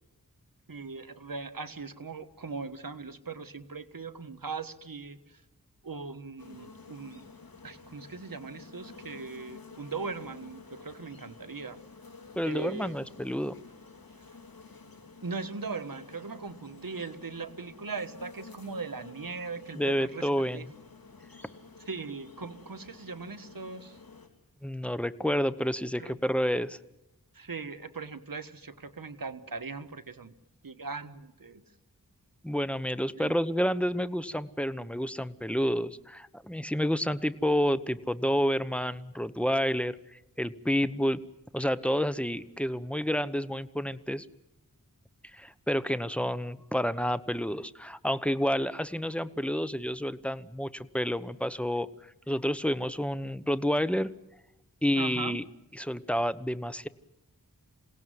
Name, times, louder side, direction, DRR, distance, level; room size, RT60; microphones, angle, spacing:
voice 1, 0.7-5.4 5.8-7.3 7.6-11.8 12.4-13.0 15.2-20.6 21.9-24.0 26.0-26.1 27.3-30.3 30.6-31.6 33.2-33.3 54.9-55.4, right 4 dB, 70° right, 9 dB, 1.5 m, -39 dB
sound 1, 6.4-24.3, left 4 dB, 75° left, 3.3 m, -51 dB
voice 2, 12.4-13.5 19.7-20.7 24.6-26.8 32.4-41.2 41.5-44.3 45.3-51.9 52.3-54.1 54.8-55.4 55.7-56.9, equal, 5° left, 13 dB, 1.1 m, -29 dB
27.5 x 17.5 x 9.5 m, 0.96 s
wide cardioid pair, 60°, 35 cm